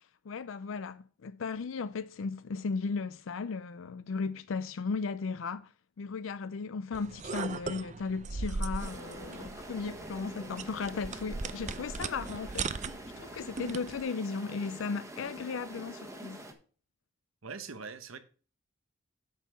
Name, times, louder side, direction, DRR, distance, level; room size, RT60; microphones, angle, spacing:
voice 1, 0.0-12.7 13.2-16.4, left 4 dB, 70° left, 0.4 m, -36 dB
sound 1, 6.9-14.0, right 4 dB, 35° right, 0.5 m, -39 dB
sound 2, 8.8-16.5, right 1 dB, 15° right, 1.3 m, -46 dB
voice 2, 17.4-18.2, right 5 dB, 90° right, 1.1 m, -42 dB
8.1 x 5.6 x 6.2 m
head